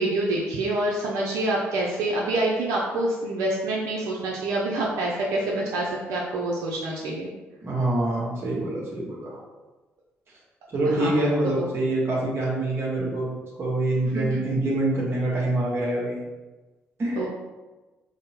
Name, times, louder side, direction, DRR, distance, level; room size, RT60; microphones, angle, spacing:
voice 1, 0.0-7.3 10.9-11.3 11.6-11.7 14.1-14.4 17.2-17.3, right 2 dB, 80° right, -4 dB, 0.5 m, -26 dB
voice 2, 7.6-9.4 10.7-13.3 13.6-16.2 17.0-17.2, right 1 dB, 50° right, -3 dB, 1.3 m, -25 dB
3.5 x 2.1 x 4.2 m, 1.2 s
supercardioid pair, 60°, 5 cm